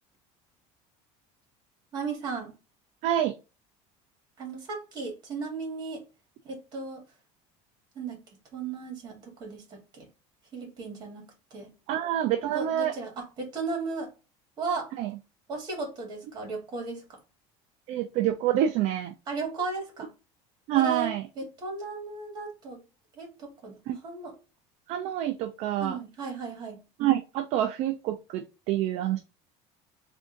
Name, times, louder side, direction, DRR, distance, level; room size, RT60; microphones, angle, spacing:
voice 1, 1.9-2.5 4.4-6.0 6.4-7.0 8.0-8.2 8.5-10.1 10.5-11.7 12.5-14.1 14.6-14.9 15.5-17.2 19.3-20.1 20.7-22.8 23.2-23.8 24.0-24.3 25.8-26.8, right 4 dB, 30° right, 1.8 m, -35 dB
voice 2, 3.0-3.3 11.9-12.9 15.0-15.1 17.9-19.1 20.7-21.3 23.9-24.0 24.9-26.0 27.0-29.2, right 11 dB, 50° right, 0.4 m, -27 dB
3.5 x 2.6 x 3.8 m
cardioid pair, 170°, 14 cm